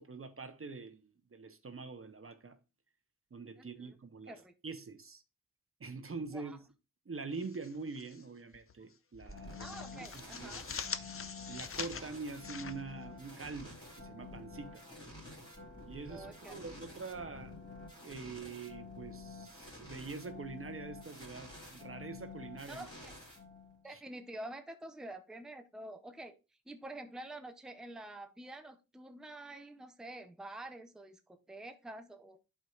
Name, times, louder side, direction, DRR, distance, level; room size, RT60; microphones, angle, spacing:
voice 1, 0.0-2.6 3.3-5.2 5.8-6.6 7.1-10.8 11.1-14.8 15.9-17.6 18.0-22.9 23.9-24.0, right 4 dB, 40° right, 0.8 m, -45 dB
voice 2, 3.6-3.9 4.3-4.5 6.3-6.6 9.6-10.7 16.1-16.7 22.7-23.1 23.8-26.4 26.7-32.4, right 1 dB, ahead, 0.7 m, -48 dB
sound 1, 7.3-8.2 8.5-8.7 9.1-13.6, left 6 dB, 40° left, 0.6 m, -44 dB
sound 2, 9.3-23.9, left 3 dB, 15° left, 3.3 m, -50 dB
11.0 x 4.6 x 2.4 m
wide cardioid pair, 75°, 34 cm